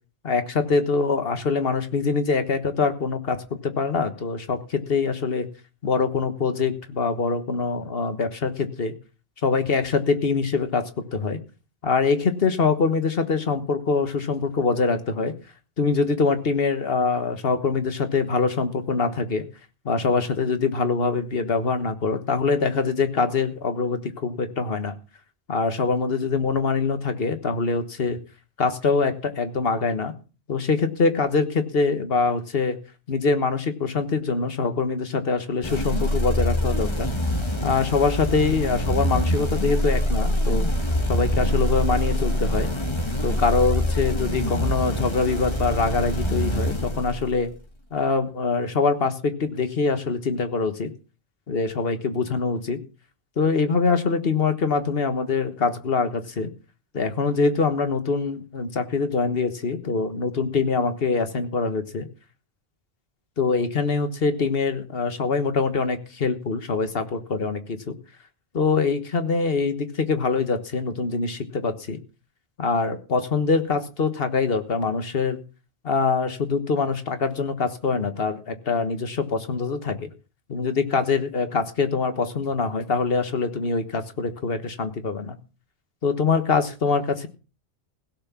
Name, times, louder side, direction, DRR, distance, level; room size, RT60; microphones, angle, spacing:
voice 1, 0.2-5.5 5.8-8.9 9.4-11.4 11.8-15.3 15.8-19.4 19.8-25.0 25.5-28.2 28.6-30.1 30.5-32.8 33.1-37.1 37.6-40.7 41.1-42.7 43.2-47.5 47.9-50.9 51.5-52.8 53.4-56.5 56.9-62.1 63.4-67.9 68.5-72.0 72.6-75.4 75.8-80.1 80.5-85.4 86.0-87.3, left 4 dB, 65° left, 9 dB, 1.6 m, -24 dB
sound 1, 35.6-47.6, equal, 25° left, 1.5 m, -25 dB
16.5 x 6.1 x 7.0 m, 0.34 s
omnidirectional pair, 1.1 m